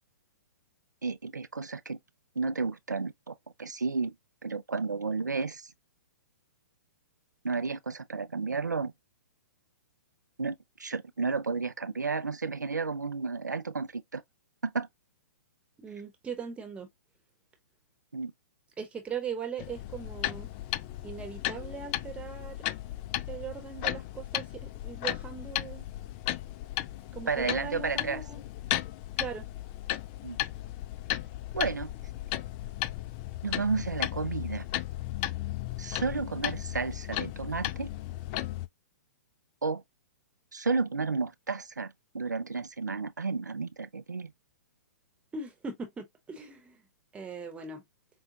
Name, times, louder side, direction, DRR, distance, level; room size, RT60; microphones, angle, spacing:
voice 1, 1.0-2.0 2.4-4.1 4.4-5.7 7.4-8.9 10.4-14.2 14.6-14.9 18.1-18.3 27.3-28.2 30.2-30.4 31.5-31.9 33.4-34.7 35.8-37.9 39.6-39.8 40.5-44.3, right 4 dB, 90° right, 0.5 m, -32 dB
voice 2, 15.8-16.9 18.8-20.5 21.0-22.6 23.3-25.9 27.1-28.4 29.2-29.4 45.3-46.8 47.1-47.8, right 6 dB, 15° right, 1.0 m, -39 dB
sound 1, 19.6-38.7, left 15 dB, 30° left, 0.3 m, -35 dB
5.1 x 2.2 x 2.7 m
figure-of-eight pair, 120°, 9 cm